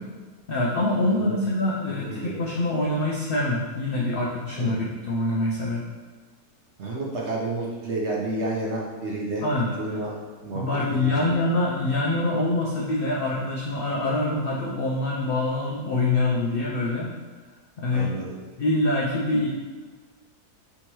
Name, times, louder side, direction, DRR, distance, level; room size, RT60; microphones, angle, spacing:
voice 1, 0.5-5.9 9.4-9.7 10.5-17.2 17.8-18.2 18.6-19.5, left 2 dB, 80° left, -3 dB, 0.5 m, -25 dB
voice 2, 1.9-2.3 4.6-4.8 6.8-9.5 9.8-10.1 10.4-11.4 17.9-18.4, right 2 dB, 55° right, -3 dB, 0.9 m, -30 dB
3.5 x 2.9 x 4.5 m, 1.5 s
omnidirectional pair, 1.6 m